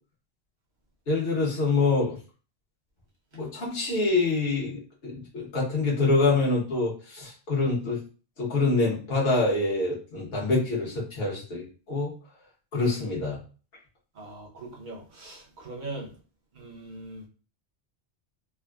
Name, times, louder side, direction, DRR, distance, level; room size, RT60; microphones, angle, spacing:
voice 1, 1.1-2.2 3.3-8.0 8.4-12.1 12.7-13.4, left 3 dB, 60° left, -4 dB, 1.2 m, -26 dB
voice 2, 14.2-15.4 15.6-16.1 16.6-17.2, right 2 dB, 45° right, -2 dB, 0.8 m, -40 dB
3.4 x 2.1 x 2.3 m, 0.37 s
omnidirectional pair, 1.1 m